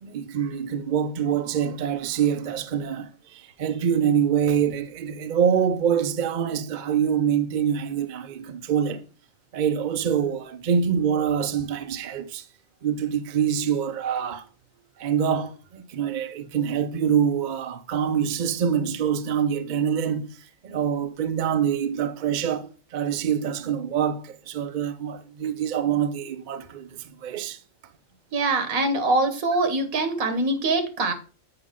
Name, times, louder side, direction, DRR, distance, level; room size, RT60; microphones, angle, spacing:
voice 1, 0.0-9.0 9.5-12.4 12.8-14.5 15.0-20.4 20.6-27.6, right 8 dB, 55° right, 0.5 m, -25 dB
voice 2, 28.3-31.1, right 2 dB, 80° right, 1.6 m, -23 dB
7.7 x 5.3 x 3.6 m
omnidirectional pair, 1.4 m